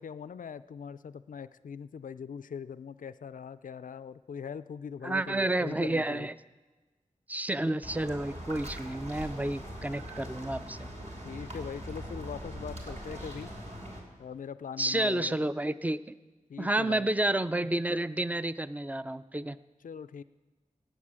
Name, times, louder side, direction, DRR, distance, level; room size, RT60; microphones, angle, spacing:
voice 1, 0.0-6.3 11.2-13.5 14.2-15.5 16.5-17.1 19.8-20.2, left 7 dB, 75° left, 13 dB, 0.4 m, -41 dB
voice 2, 5.0-6.3 7.3-10.9 14.8-16.0 16.6-19.6, right 1 dB, 10° right, 13 dB, 0.4 m, -30 dB
sound 1, 7.8-14.0, equal, 60° right, 3.2 m, -41 dB
18.5 x 7.4 x 7.5 m, 1.3 s
wide cardioid pair, 70°, 14 cm